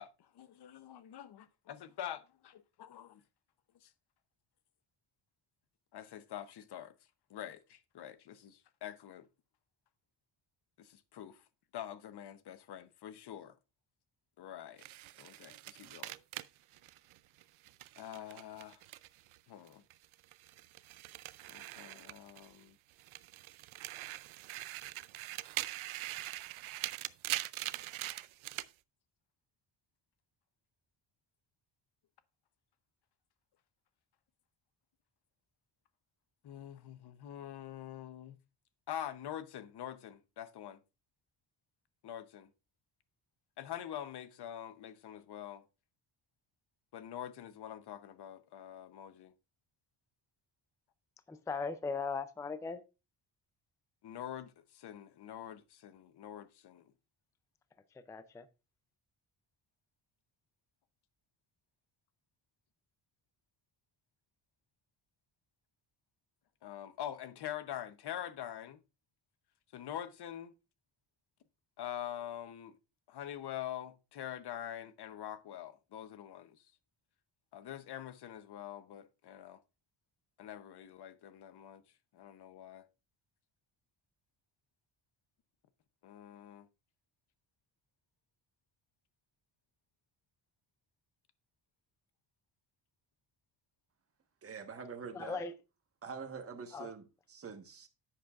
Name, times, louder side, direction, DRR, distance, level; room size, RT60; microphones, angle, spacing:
voice 1, 0.0-3.2 3.8-3.9 5.9-6.9 7.3-9.3 10.8-11.4 11.7-13.5 14.4-14.8 15.2-16.2 18.0-18.8 19.5-19.8 21.5-22.8 36.4-38.4 38.9-40.8 42.0-42.5 43.6-45.7 46.9-49.3 54.0-56.9 66.6-68.8 69.7-70.5 71.8-72.8 73.1-76.6 77.5-79.6 80.4-81.8 82.1-82.9 86.0-86.7, left 10 dB, 55° left, 0.8 m, -45 dB
sound 1, 14.8-19.4 19.7-22.6 23.0-28.7, right 17 dB, 90° right, 0.6 m, -43 dB
voice 2, 51.3-52.8 57.9-58.5 95.1-95.5 96.7-96.9, left 4 dB, 5° left, 0.4 m, -38 dB
voice 3, 94.4-95.5 96.0-97.9, right 5 dB, 30° right, 1.2 m, -45 dB
10.5 x 7.9 x 2.4 m
wide cardioid pair, 150°, 46 cm